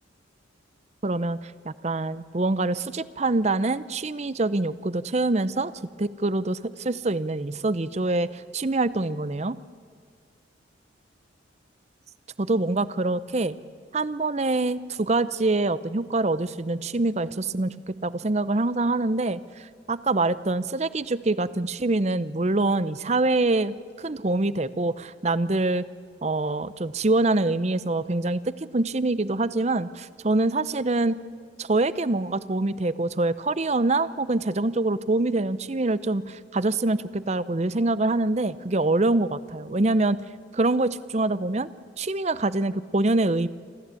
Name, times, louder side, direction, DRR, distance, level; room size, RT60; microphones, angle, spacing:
voice 1, 1.0-5.7 6.0-9.6 12.4-13.6 13.9-25.8 26.2-31.2 31.6-40.2 40.5-41.7 42.0-43.5, right 2 dB, 35° right, 17 dB, 0.6 m, -25 dB
27.5 x 14.0 x 8.3 m, 2.1 s
head